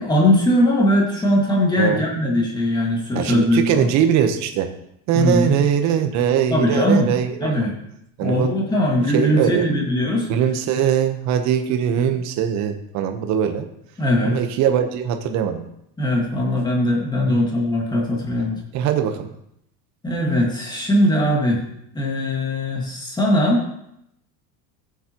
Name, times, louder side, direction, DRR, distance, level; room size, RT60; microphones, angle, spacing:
voice 1, 0.0-3.9 5.1-5.6 6.5-7.1 7.4-7.7 8.2-10.3 14.0-14.4 16.0-18.6 20.0-21.6 21.9-23.6, left 1 dB, 10° left, -1 dB, 1.8 m, -20 dB
voice 2, 3.1-4.7 5.1-7.6 8.2-8.5 9.1-9.7 10.3-13.7 14.2-15.7 17.3-17.4 18.7-19.3, right 9 dB, 40° right, 6 dB, 1.0 m, -21 dB
13.5 x 7.3 x 2.9 m, 0.77 s
cardioid pair, 160°, 42 cm